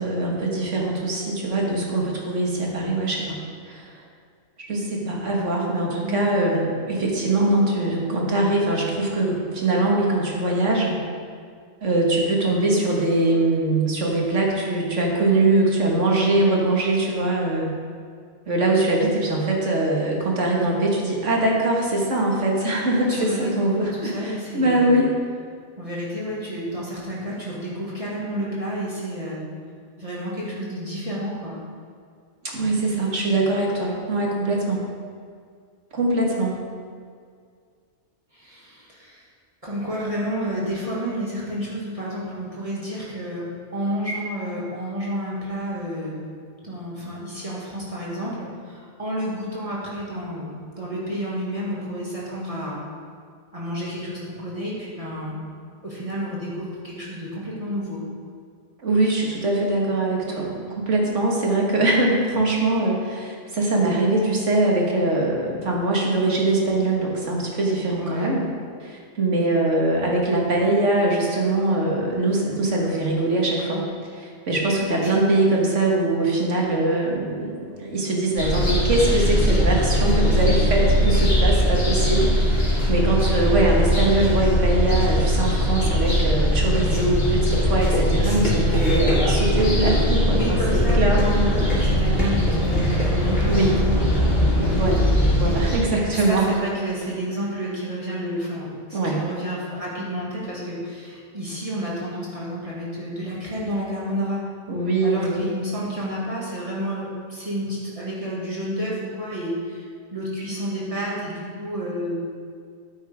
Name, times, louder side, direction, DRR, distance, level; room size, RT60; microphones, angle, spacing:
voice 1, 0.0-3.3 3.7-4.0 4.6-11.0 11.8-17.7 18.5-25.1 32.5-34.8 35.9-36.6 58.8-60.5 60.8-68.5 68.8-91.5 93.5-93.7 94.6-96.5 98.9-99.2 104.7-105.5, right 2 dB, 80° right, -2 dB, 2.2 m, -22 dB
voice 2, 23.1-24.9 25.8-29.4 30.0-31.6 33.1-33.3 38.3-39.2 39.6-46.2 46.6-52.8 53.5-55.4 55.8-58.0 60.2-60.4 68.0-68.3 75.0-75.1 88.2-88.5 89.6-89.7 90.3-93.9 96.1-104.4 105.0-112.2, equal, 30° right, -6 dB, 2.2 m, -30 dB
sound 1, 78.4-95.8, equal, 55° left, 2.8 m, -20 dB
13.0 x 9.0 x 3.6 m, 2.1 s
omnidirectional pair, 1.2 m